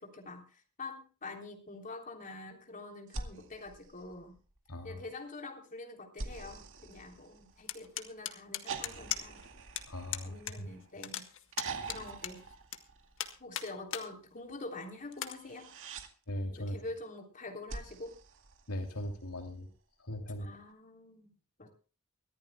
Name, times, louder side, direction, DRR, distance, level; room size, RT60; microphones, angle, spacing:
voice 1, 0.0-4.3 4.8-9.4 10.2-11.3 11.8-12.5 13.4-15.7 16.5-18.1 20.4-21.3 21.6-21.7, left 2 dB, 35° left, 3 dB, 3.4 m, -46 dB
sound 1, 3.1-4.7 6.2-7.9 8.7-10.9 11.5-13.4 15.3-16.1 17.7-19.2 20.7-20.8, right 4 dB, 60° right, 2.1 m, -45 dB
voice 2, 4.7-5.0 9.9-10.7 16.3-16.8 18.7-19.7 20.0-20.6, equal, 85° left, 4 dB, 2.7 m, -39 dB
sound 2, 7.7-9.5 9.8-9.9 10.1-10.6 10.8-12.8 13.2-14.1 14.5-14.6 15.1-15.3, left 10 dB, 60° left, 1.7 m, -38 dB
23.5 x 15.0 x 2.2 m, 0.36 s
head